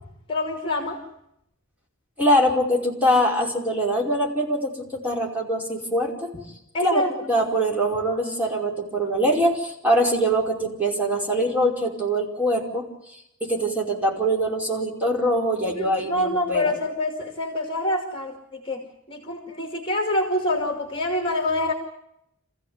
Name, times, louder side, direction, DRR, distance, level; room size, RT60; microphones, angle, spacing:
voice 1, 0.3-1.0 6.7-7.1 15.6-21.7, left 1 dB, 25° left, 4 dB, 2.5 m, -26 dB
voice 2, 2.2-6.3 6.8-12.8 13.4-16.2 16.5-16.7, equal, 10° right, -2 dB, 5.1 m, -23 dB
27.0 x 16.0 x 9.7 m, 0.82 s
head